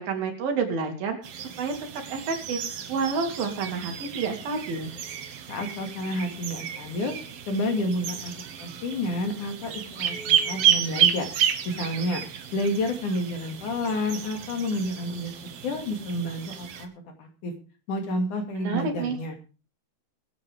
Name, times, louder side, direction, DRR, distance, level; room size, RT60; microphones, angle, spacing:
voice 1, 0.0-1.7 2.1-2.6 2.9-4.9 18.6-19.2, right 4 dB, 85° right, 3 dB, 4.3 m, -29 dB
sound 1, 1.2-16.9, right 9 dB, 60° right, 1.7 m, -31 dB
voice 2, 5.5-7.1 7.5-8.3 8.6-11.3 11.7-12.2 12.5-15.3 15.6-16.9 17.2-17.5 17.9-19.4, left 1 dB, 60° left, 4 dB, 3.6 m, -29 dB
22.5 x 8.5 x 3.6 m, 0.34 s
omnidirectional pair, 4.1 m